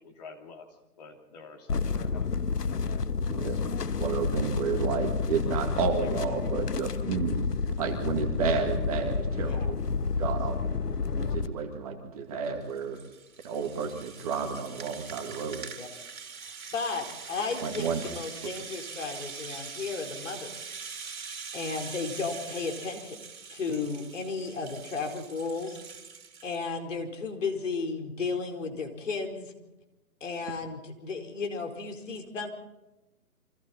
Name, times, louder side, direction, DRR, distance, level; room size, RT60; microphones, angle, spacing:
voice 1, 0.0-2.9, left 4 dB, 25° left, 3 dB, 3.0 m, -49 dB
sound 1, 1.7-11.5, left 5 dB, 85° left, 1.5 m, -30 dB
voice 2, 4.0-7.4 7.8-9.8 10.2-10.8 11.2-13.0 13.4-15.7 17.6-18.0, right 5 dB, 25° right, 3 dB, 2.1 m, -31 dB
voice 3, 9.4-9.8 15.8-15.9 16.7-20.7 21.5-23.2 23.5-25.8 26.4-29.5 30.2-32.5, left 4 dB, 50° left, 4 dB, 4.5 m, -34 dB
Rattle (instrument), 12.4-26.6, right 5 dB, 60° right, 3.8 m, -43 dB
29.5 x 24.5 x 4.3 m, 1.0 s
hypercardioid pair, 160°, 46 cm